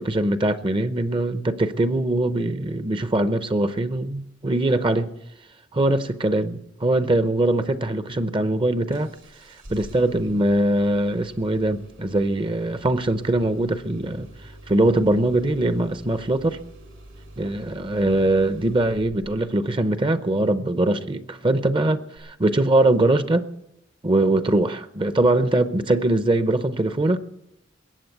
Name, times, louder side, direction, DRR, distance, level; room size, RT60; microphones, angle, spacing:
voice 1, 0.0-5.1 5.7-9.1 9.7-14.3 14.7-16.6 17.4-23.5 24.0-27.2, right 1 dB, 25° right, 0.7 m, -22 dB
Engine starting, 8.9-19.5 22.2-22.3, right 1 dB, 85° right, 6.1 m, -46 dB
21.5 x 8.6 x 8.0 m
head